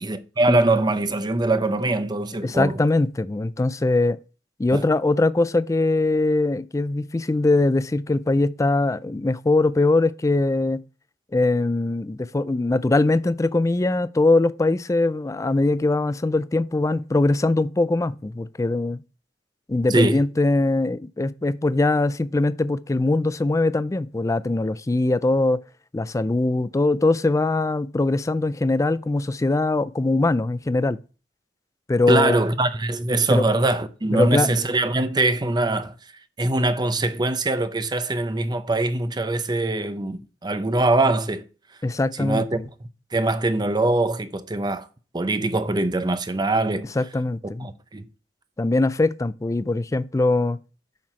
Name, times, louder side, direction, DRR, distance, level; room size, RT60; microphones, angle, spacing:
voice 1, 0.0-2.8 4.7-4.8 19.9-20.2 32.1-35.9 36.4-41.4 42.2-42.6 43.1-44.9 45.1-46.9 47.6-48.1, right 2 dB, 25° right, 0.6 m, -22 dB
voice 2, 2.4-4.2 4.6-10.8 11.3-19.0 19.7-25.6 25.9-31.0 31.9-32.4 33.3-33.4 34.1-34.5 41.8-42.7 47.0-47.7 48.6-50.6, left 2 dB, 20° left, 0.3 m, -21 dB
7.4 x 5.8 x 4.4 m
head